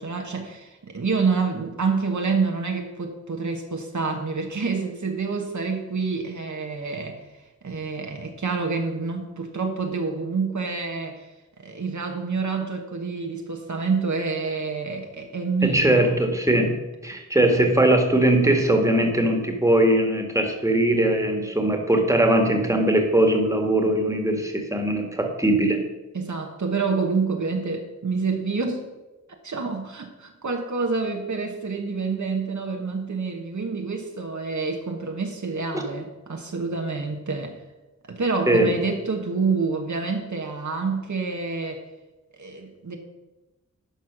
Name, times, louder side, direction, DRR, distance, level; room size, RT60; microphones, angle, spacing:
voice 1, 0.0-7.2 7.6-11.2 11.6-16.1 26.1-28.9 29.4-37.6 38.1-41.8 42.4-43.0, right 4 dB, 70° right, 3 dB, 1.2 m, -27 dB
voice 2, 15.6-16.8 17.0-25.8 35.7-35.8 38.5-38.7, right 1 dB, 10° right, 3 dB, 1.7 m, -20 dB
11.5 x 4.4 x 6.1 m, 1.1 s
wide cardioid pair, 55°, 30 cm